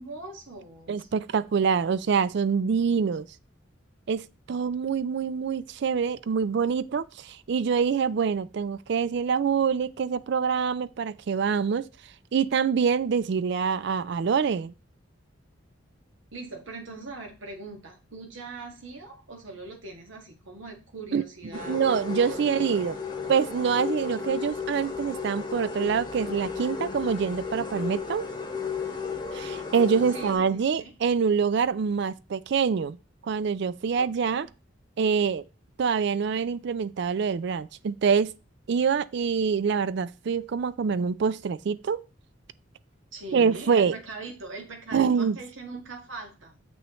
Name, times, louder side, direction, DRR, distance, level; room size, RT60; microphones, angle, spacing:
voice 1, 0.0-1.1 16.3-21.8 22.1-22.6 30.1-30.9 34.0-34.5 43.1-46.6, right 2 dB, 80° right, 1.8 m, -41 dB
voice 2, 0.9-3.2 4.1-11.9 12.3-14.7 21.1-21.2 21.7-23.0 23.3-28.3 29.3-33.0 33.3-34.5 35.0-35.4 35.8-38.3 38.7-42.0 43.3-43.9 44.9-45.4, right 6 dB, 60° right, 0.4 m, -25 dB
sound 1, 21.5-30.3, left 5 dB, 20° left, 1.0 m, -34 dB
7.0 x 6.1 x 3.0 m
head